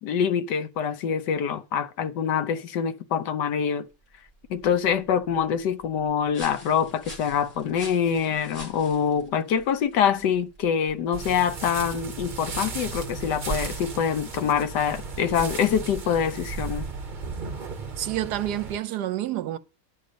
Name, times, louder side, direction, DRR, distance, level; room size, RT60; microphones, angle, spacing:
voice 1, 0.0-3.9 4.5-16.9, left 7 dB, 75° left, 1.4 m, -25 dB
sound 1, 3.9-11.3, equal, 35° left, 3.2 m, -47 dB
sound 2, 11.1-18.8, right 4 dB, 35° right, 0.9 m, -35 dB
voice 2, 18.0-19.6, right 12 dB, 75° right, 1.2 m, -28 dB
10.5 x 5.1 x 6.8 m
omnidirectional pair, 1.8 m